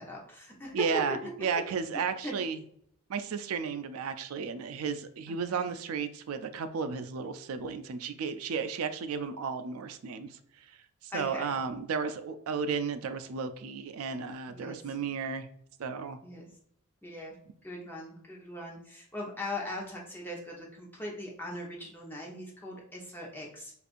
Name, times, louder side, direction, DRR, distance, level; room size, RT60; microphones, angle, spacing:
voice 1, 0.0-0.8 2.2-2.3 5.5-5.7 11.1-11.6 14.5-14.8 16.2-16.5 17.0-17.3 17.6-23.7, left 1 dB, 10° left, -2 dB, 0.8 m, -40 dB
voice 2, 0.7-2.6 3.1-10.3 11.0-15.5 15.8-16.2, right 5 dB, 85° right, 11 dB, 0.4 m, -33 dB
5.1 x 2.5 x 2.5 m, 0.69 s
head